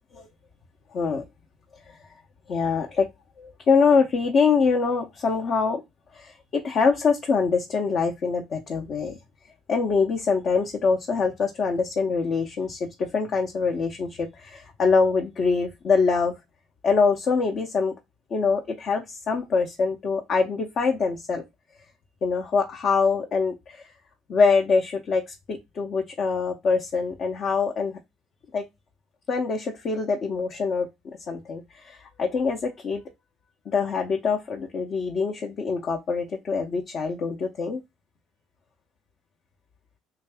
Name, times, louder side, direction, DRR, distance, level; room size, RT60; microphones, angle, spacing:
voice 1, 0.9-1.2 2.5-3.1 3.4-5.8 6.1-9.2 9.7-16.3 16.8-17.9 18.3-21.4 22.2-23.9 24.3-28.0 28.5-28.6 29.3-30.9 31.3-33.0 33.7-37.8, left 5 dB, 50° left, 0.7 m, -24 dB
3.4 x 2.6 x 3.4 m
supercardioid pair, 80°, 0 cm